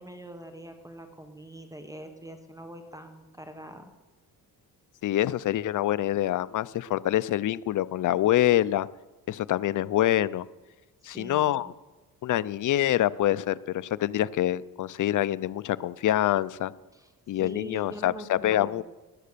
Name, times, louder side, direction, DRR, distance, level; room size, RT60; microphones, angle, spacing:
voice 1, 0.0-3.9 11.0-11.7 16.9-17.1 17.4-18.8, equal, 10° right, 6 dB, 1.2 m, -43 dB
voice 2, 5.0-8.9 9.3-10.5 11.0-11.7 12.2-16.7 17.3-18.8, left 13 dB, 55° left, 17 dB, 0.6 m, -26 dB
18.5 x 10.0 x 6.8 m, 1.1 s
cardioid pair, 125°, 36 cm